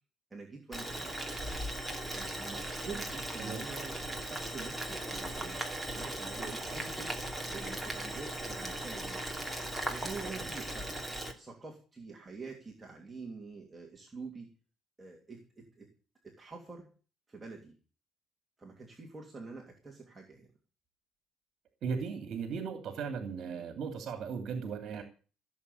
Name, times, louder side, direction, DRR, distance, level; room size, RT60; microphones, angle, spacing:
voice 1, 0.3-1.2 2.1-4.0 4.3-5.6 5.9-9.4 9.9-14.5 15.0-15.9 16.2-16.9 17.3-17.7 18.6-20.5, right 4 dB, 15° right, -1 dB, 3.0 m, -46 dB
Boiling, 0.7-11.3, right 1 dB, 5° left, 2.8 m, -38 dB
voice 2, 21.8-25.0, right 6 dB, 45° right, 7 dB, 2.8 m, -37 dB
17.0 x 7.5 x 8.4 m, 0.38 s
cardioid pair, 155°, 0 cm